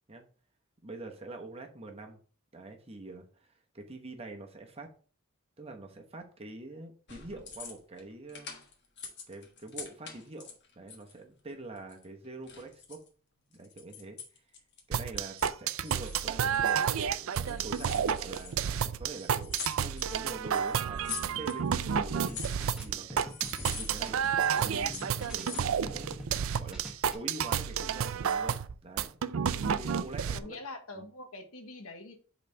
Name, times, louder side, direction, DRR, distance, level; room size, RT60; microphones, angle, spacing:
voice 1, 0.8-2.2 2.5-4.9 5.6-8.6 9.3-13.0 13.5-14.2 14.9-22.6 22.8-23.3 23.8-24.2 24.6-26.8 27.1-29.2 29.5-30.6 30.9-31.0, right 2 dB, 30° right, 3 dB, 0.9 m, -45 dB
sound 1, 7.1-8.0 8.3-11.2 11.8-13.1 13.5-14.8 15.2-15.6 15.9-16.9 17.3-18.8 19.1-20.3 20.7-21.7 22.0-23.0 23.3-24.3 24.6-25.8, left 6 dB, 55° left, 1.4 m, -45 dB
sound 2, 14.9-30.4, right 7 dB, 70° right, 0.4 m, -30 dB
sound 3, 21.9-26.4 26.7-27.1, right 1 dB, 5° right, 1.2 m, -45 dB
voice 2, 30.3-32.2, left 2 dB, 90° left, 6 dB, 1.3 m, -44 dB
5.3 x 4.0 x 5.4 m, 0.41 s
head